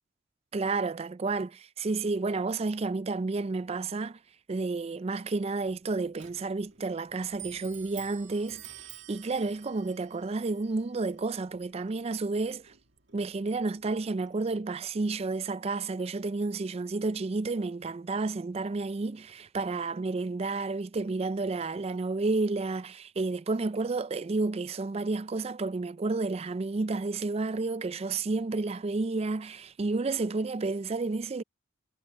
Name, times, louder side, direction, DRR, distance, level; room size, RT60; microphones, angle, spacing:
voice 1, 0.5-4.2 4.5-12.7 13.1-31.4, right 3 dB, 30° right, 0.4 m, -31 dB
Clock, 5.6-14.9, right 11 dB, 55° right, 2.5 m, -52 dB
head